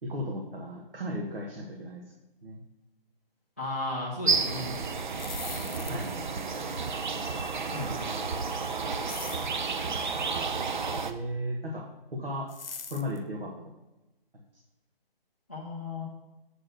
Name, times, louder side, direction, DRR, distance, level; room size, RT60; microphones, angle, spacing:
voice 1, 0.0-2.0 2.4-2.6 5.6-6.2 10.0-10.6 11.0-12.5 12.9-13.7, equal, 75° right, -1 dB, 1.5 m, -36 dB
voice 2, 3.6-4.7 7.7-8.1 15.5-16.0, left 2 dB, 15° left, -9 dB, 0.6 m, -35 dB
sound 1, 4.3-11.1, right 4 dB, 55° right, 0.6 m, -31 dB
sound 2, 5.2-6.3 9.1-9.6 12.5-13.2, left 5 dB, 70° left, 0.9 m, -41 dB
7.6 x 4.3 x 6.3 m, 1.0 s
hypercardioid pair, 175°, 29 cm